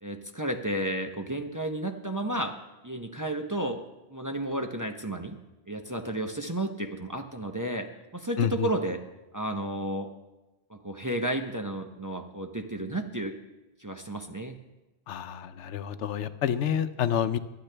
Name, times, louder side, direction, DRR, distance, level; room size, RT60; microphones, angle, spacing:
voice 1, 0.0-2.5 2.8-3.8 4.1-5.4 5.7-7.9 8.1-9.0 9.3-10.1 10.7-13.3 13.8-14.6, right 1 dB, 20° right, 4 dB, 0.6 m, -32 dB
voice 2, 8.4-8.7 15.1-17.4, left 9 dB, 90° left, 12 dB, 0.9 m, -28 dB
24.0 x 8.8 x 3.3 m, 1.1 s
omnidirectional pair, 1.2 m